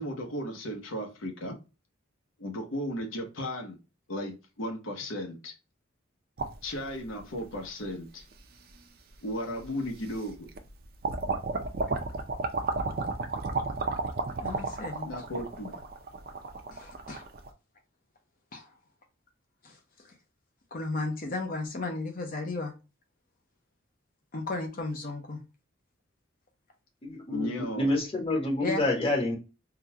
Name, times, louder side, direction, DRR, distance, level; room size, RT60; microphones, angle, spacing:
voice 1, 0.0-1.6 2.4-3.8 4.1-5.5 6.6-8.2 9.2-10.5 15.1-15.8 27.3-27.9, equal, 85° left, 0.9 m, -35 dB
sound 1, 6.4-7.5 8.3-8.4 9.6-9.7 10.1-10.7 11.0-17.5, right 3 dB, 50° right, 0.5 m, -32 dB
voice 2, 14.4-15.3 16.7-17.3 18.5-18.7 19.6-19.8 20.7-22.7 24.3-25.4 28.6-28.8, left 2 dB, 45° left, 0.6 m, -34 dB
voice 3, 27.0-27.5 27.8-29.4, left 2 dB, 30° left, 1.0 m, -27 dB
3.8 x 2.3 x 2.7 m
head